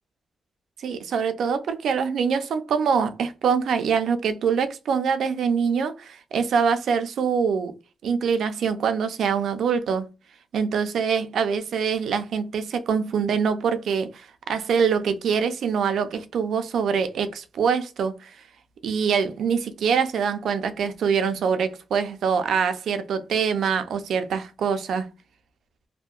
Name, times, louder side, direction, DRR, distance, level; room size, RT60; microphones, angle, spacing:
voice 1, 0.8-7.7 8.0-10.1 10.5-18.3 18.8-25.1, right 6 dB, 85° right, 0.4 m, -24 dB
2.7 x 2.1 x 2.3 m
cardioid pair, 90°, 0 cm